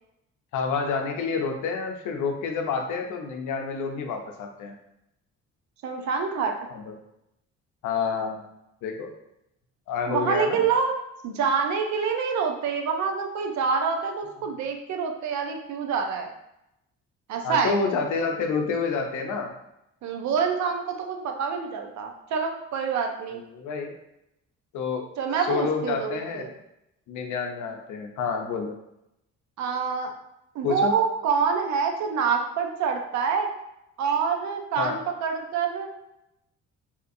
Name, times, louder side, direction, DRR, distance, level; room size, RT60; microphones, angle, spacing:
voice 1, 0.5-4.7 6.7-6.9 7.8-8.5 8.8-9.1 9.9-10.6 17.4-19.5 23.3-23.9 24.7-25.1 25.4-26.5 27.1-28.7 30.6-31.0 34.8-35.0, left 5 dB, 80° left, 4 dB, 0.5 m, -28 dB
voice 2, 5.8-6.6 10.1-10.9 11.2-16.3 17.3-17.8 20.0-23.4 25.2-26.5 29.6-30.1 30.5-33.5 34.0-35.9, right 6 dB, 65° right, 4 dB, 0.5 m, -26 dB
2.8 x 2.4 x 2.5 m, 0.85 s
cardioid pair, 90°, 30 cm